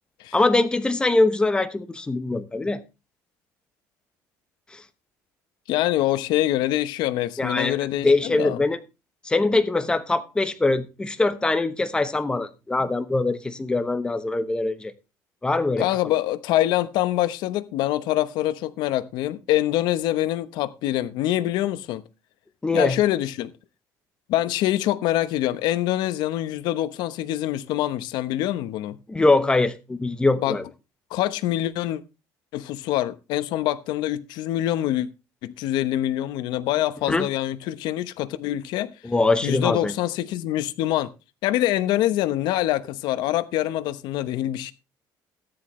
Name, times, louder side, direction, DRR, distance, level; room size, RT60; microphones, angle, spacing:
voice 1, 0.3-2.8 4.7-4.8 7.4-8.8 9.2-14.9 15.4-15.9 22.6-23.0 29.1-30.6 37.0-37.3 39.0-39.9, left 2 dB, 10° left, 1.0 m, -22 dB
voice 2, 5.7-8.6 15.8-22.0 22.7-23.5 24.3-29.0 30.4-30.6 31.1-32.0 32.5-35.1 35.4-38.9 39.4-41.1 41.4-44.7, left 14 dB, 75° left, 1.0 m, -25 dB
13.5 x 9.9 x 3.2 m
cardioid pair, 145°, 8 cm